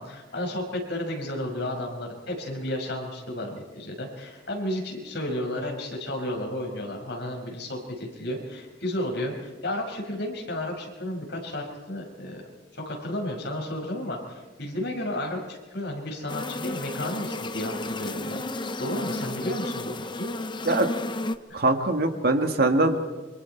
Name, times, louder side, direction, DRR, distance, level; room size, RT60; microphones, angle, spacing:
voice 1, 0.0-12.4 12.7-20.3 21.5-21.6, left 1 dB, 65° left, 1 dB, 5.5 m, -32 dB
sound 1, 16.3-21.4, left 2 dB, 25° left, 0.8 m, -33 dB
voice 2, 21.5-23.0, right 2 dB, 55° right, 5 dB, 1.9 m, -22 dB
28.5 x 25.0 x 4.5 m, 1.2 s
head